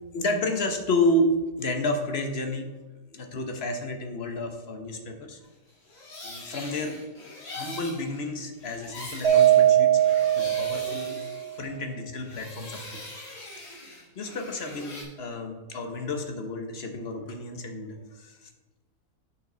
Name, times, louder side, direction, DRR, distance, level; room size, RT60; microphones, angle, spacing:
voice 1, 0.0-2.7 3.1-5.4 6.2-7.0 7.5-11.2 11.6-13.0 13.6-18.5, left 1 dB, 45° left, 5 dB, 1.1 m, -31 dB
sound 1, 5.7-11.9 12.2-15.0, left 2 dB, 60° left, 3.0 m, -42 dB
Mallet percussion, 9.2-11.5, right 12 dB, 45° right, 1.9 m, -21 dB
8.8 x 6.3 x 3.9 m, 1.2 s
omnidirectional pair, 1.8 m